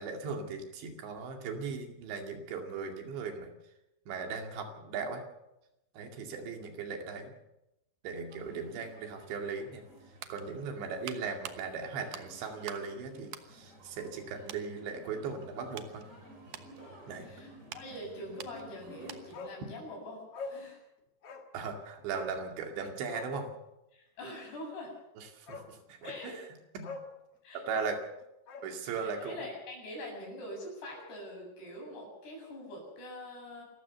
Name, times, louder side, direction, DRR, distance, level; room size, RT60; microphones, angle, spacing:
voice 1, 0.0-3.5 4.1-5.2 5.9-7.4 8.0-9.8 10.3-16.0 17.1-17.3 21.5-23.5 25.2-26.4 26.7-26.9 27.5-28.0 28.6-29.4, right 5 dB, 85° right, 4 dB, 4.7 m, -38 dB
sound 1, 8.3-19.3, right 1 dB, 20° right, 3.9 m, -54 dB
sound 2, 10.1-12.9 13.2-14.2 14.5-14.7 15.3-19.5 19.8-20.0, right 10 dB, 65° right, 2.2 m, -48 dB
voice 2, 17.2-20.8 23.9-24.9 26.0-26.3 27.4-27.6 28.9-33.6, left 1 dB, 65° left, 0 dB, 9.8 m, -44 dB
Bark, 19.3-19.6 19.9-20.0 20.3-20.6 21.2-21.5 22.1-22.4 23.0-23.4 25.0-25.1 25.5-25.7 26.0-26.3 26.8-27.1 27.7-28.7 29.0-29.1, left 4 dB, 50° left, 1.9 m, -43 dB
27.0 x 14.5 x 7.0 m, 0.91 s
omnidirectional pair, 5.0 m